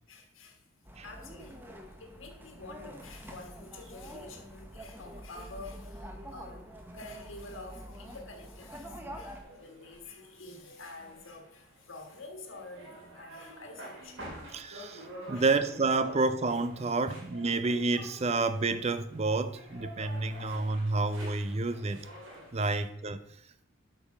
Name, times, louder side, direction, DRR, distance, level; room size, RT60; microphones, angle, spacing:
voice 1, 0.1-0.6 1.0-1.7 2.0-14.2 15.0-15.5 17.1-17.2 20.5-20.6 20.9-21.1 22.4-22.8, left 2 dB, 70° left, 1.5 m, -48 dB
sound 1, 0.9-9.4, equal, 10° right, 0.9 m, -46 dB
sound 2, 9.4-22.6, right 1 dB, 70° right, 3.3 m, -49 dB
voice 2, 14.5-15.0 15.3-22.0 22.5-23.2, right 3 dB, 30° right, 0.5 m, -29 dB
8.4 x 5.4 x 6.0 m
head